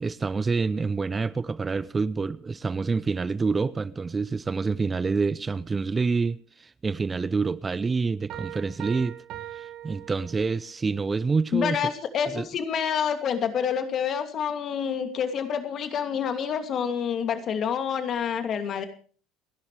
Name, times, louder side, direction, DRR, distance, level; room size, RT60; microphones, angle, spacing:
voice 1, 0.0-9.2 9.5-11.8 12.3-12.5, right 4 dB, 25° right, 0.6 m, -27 dB
Piano, 8.3-10.8, right 11 dB, 60° right, 1.8 m, -40 dB
voice 2, 11.5-18.8, left 7 dB, 50° left, 2.6 m, -28 dB
29.0 x 11.5 x 3.3 m
hypercardioid pair, 80°, 0 cm